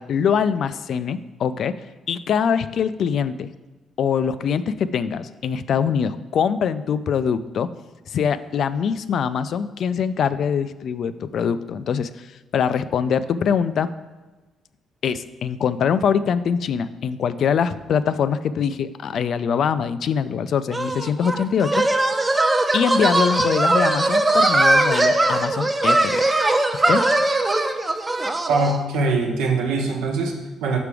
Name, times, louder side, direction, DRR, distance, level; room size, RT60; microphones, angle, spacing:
voice 1, 0.0-1.7 2.1-3.5 4.0-7.7 8.1-12.3 12.5-13.9 15.0-21.8 22.7-26.4 26.9-27.0, left 7 dB, 65° left, 13 dB, 0.3 m, -23 dB
sound 1, 20.7-28.8, right 2 dB, 20° right, 0.6 m, -20 dB
voice 2, 28.5-30.8, right 3 dB, 90° right, 2 dB, 1.0 m, -23 dB
5.8 x 5.1 x 4.8 m, 1.2 s
cardioid pair, 85°, 0 cm